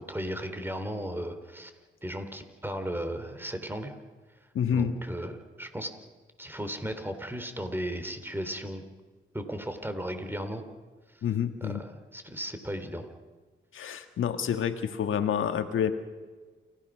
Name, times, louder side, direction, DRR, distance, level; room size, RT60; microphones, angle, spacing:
voice 1, 0.0-1.7 2.0-3.9 4.7-5.9 6.4-8.8 9.3-10.6 11.6-13.1 13.8-14.0, equal, 10° right, 7 dB, 3.6 m, -36 dB
voice 2, 4.5-4.9 11.2-11.8 13.7-15.9, left 8 dB, 75° left, 7 dB, 1.9 m, -28 dB
28.5 x 16.0 x 6.3 m, 1.4 s
supercardioid pair, 50°, 21 cm